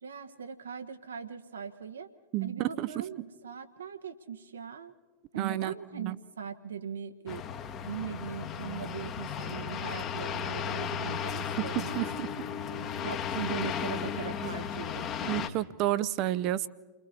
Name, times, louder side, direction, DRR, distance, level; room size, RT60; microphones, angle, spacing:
voice 1, 0.0-2.1 2.4-4.9 5.3-7.4 7.9-12.1 12.7-15.5, right 7 dB, 70° right, 8 dB, 1.4 m, -40 dB
voice 2, 2.3-2.9 5.4-6.2 11.6-12.3 15.3-16.7, right 14 dB, 40° right, 17 dB, 0.8 m, -31 dB
sound 1, 7.3-15.5, left 8 dB, 30° left, 1.3 m, -35 dB
30.0 x 22.0 x 4.3 m, 1.3 s
figure-of-eight pair, 90°, 0 cm